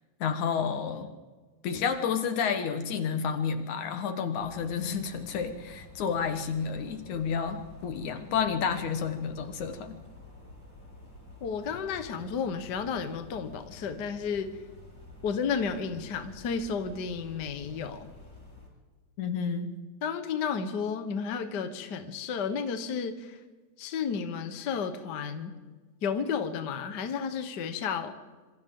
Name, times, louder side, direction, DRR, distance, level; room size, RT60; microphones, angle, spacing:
voice 1, 0.2-1.1 1.6-10.0 19.2-19.7, left 6 dB, 70° left, 7 dB, 2.7 m, -30 dB
sound 1, 4.4-18.7, left 1 dB, 25° left, 7.8 m, -50 dB
voice 2, 11.4-14.6 15.2-18.1 20.0-23.4 23.8-25.5 26.0-28.1, left 6 dB, 50° left, 8 dB, 1.2 m, -32 dB
26.5 x 25.5 x 3.8 m, 1.3 s
omnidirectional pair, 3.6 m